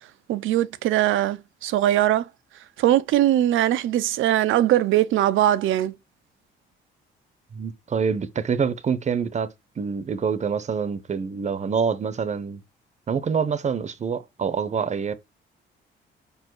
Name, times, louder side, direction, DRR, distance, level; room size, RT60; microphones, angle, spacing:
voice 1, 0.3-2.2 2.8-5.9, right 13 dB, 80° right, 0.7 m, -21 dB
voice 2, 7.5-9.5 9.8-12.6 13.1-15.1, right 6 dB, 35° right, 0.8 m, -26 dB
5.3 x 4.7 x 4.7 m
cardioid pair, 90°, 20 cm